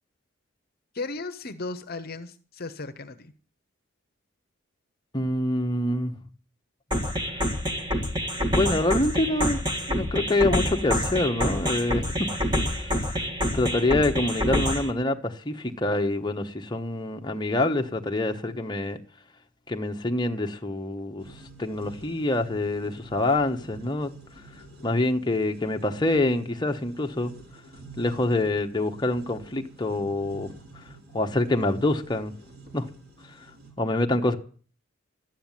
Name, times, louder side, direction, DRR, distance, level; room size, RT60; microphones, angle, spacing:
voice 1, 0.9-3.3, left 3 dB, 50° left, 1.0 m, -35 dB
voice 2, 5.1-6.1 8.5-9.6 9.9-12.3 12.9-13.0 13.5-19.0 19.7-21.2 21.6-24.1 24.8-27.3 28.0-30.5 31.1-32.3 32.7-32.9 33.8-34.4, left 2 dB, 20° left, 1.1 m, -26 dB
sound 1, 6.9-14.9, equal, 20° right, 2.1 m, -27 dB
sound 2, 21.2-33.7, right 2 dB, 50° right, 4.3 m, -48 dB
13.0 x 9.0 x 9.1 m
head